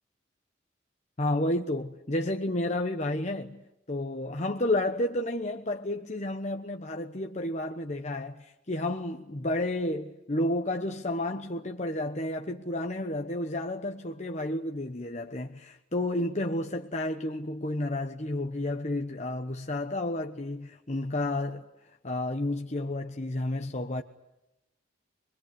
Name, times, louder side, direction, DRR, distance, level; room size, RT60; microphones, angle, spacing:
voice 1, 1.2-21.7 22.0-24.0, left 1 dB, 35° left, 1.1 m, -31 dB
25.5 x 22.5 x 9.6 m
head